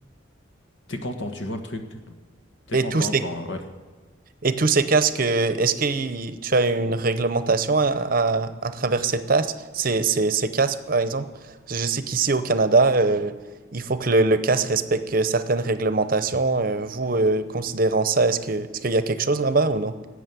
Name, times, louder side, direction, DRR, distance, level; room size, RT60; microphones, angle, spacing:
voice 1, 0.9-2.0 2.7-3.6, left 1 dB, 75° left, 5 dB, 1.5 m, -32 dB
voice 2, 2.7-3.3 4.4-13.3 13.7-19.9, right 3 dB, 45° right, 12 dB, 0.7 m, -22 dB
13.0 x 8.4 x 9.4 m, 1.4 s
head